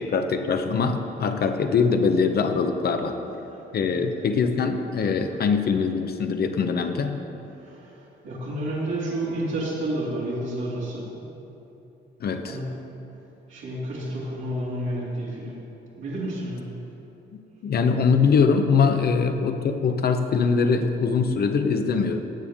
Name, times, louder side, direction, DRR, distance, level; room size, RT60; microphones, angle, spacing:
voice 1, 0.0-3.1 3.7-7.2 12.2-12.6 17.6-22.2, left 5 dB, 50° left, 7 dB, 0.8 m, -22 dB
voice 2, 3.5-4.3 5.3-5.4 7.5-11.7 12.4-12.8 13.5-15.6 16.0-16.7, right 1 dB, 75° right, -7 dB, 2.6 m, -31 dB
16.5 x 6.9 x 3.6 m, 2.9 s
cardioid pair, 90°, 20 cm